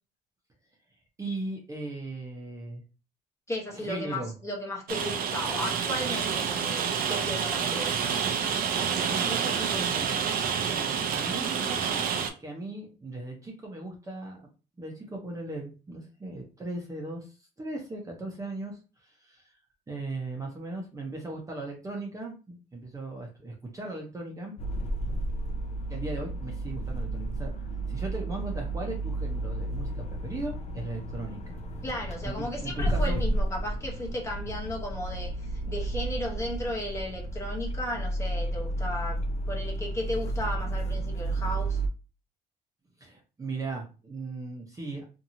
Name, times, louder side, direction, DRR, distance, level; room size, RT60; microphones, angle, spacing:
voice 1, 1.2-2.8 3.7-4.3 9.1-10.3 10.6-12.0 12.4-14.4 14.8-19.6 19.9-24.6 25.9-31.6 32.2-33.2 43.0-45.1, right 2 dB, 20° right, 0.7 m, -38 dB
voice 2, 3.5-8.2 31.8-39.2 39.5-41.8, left 1 dB, 15° left, 0.9 m, -35 dB
Rain, 4.9-12.3, right 7 dB, 60° right, 0.5 m, -28 dB
sound 1, 24.6-41.9, right 1 dB, 40° left, 0.5 m, -32 dB
2.8 x 2.6 x 2.6 m
cardioid pair, 110°, 17 cm